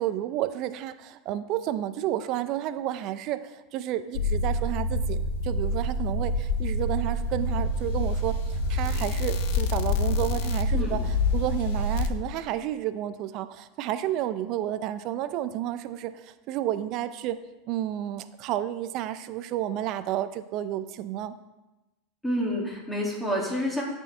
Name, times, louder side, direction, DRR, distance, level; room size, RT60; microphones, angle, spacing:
voice 1, 0.0-17.4 17.7-21.3, right 12 dB, 55° right, 12 dB, 0.5 m, -31 dB
sound 1, 4.1-12.1, left 1 dB, 65° left, 0.6 m, -27 dB
voice 2, 22.2-23.8, equal, 10° left, -3 dB, 2.1 m, -28 dB
12.5 x 4.5 x 3.4 m, 1.1 s
hypercardioid pair, 95°, 0 cm